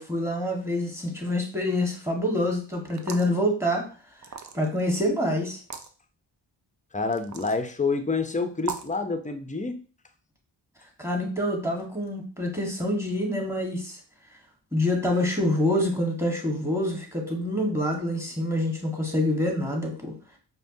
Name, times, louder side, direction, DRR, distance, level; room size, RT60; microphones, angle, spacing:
voice 1, 0.0-3.9 4.5-5.6 11.0-14.0 14.7-20.1, left 1 dB, 5° right, 1.5 m, -26 dB
sound 1, 2.9-3.4 4.2-4.8 5.6-5.9 7.1-7.6 8.6-9.0, right 6 dB, 40° right, 0.6 m, -37 dB
voice 2, 6.9-9.8, left 4 dB, 15° left, 0.6 m, -28 dB
5.0 x 2.2 x 2.7 m
cardioid pair, 45°, 47 cm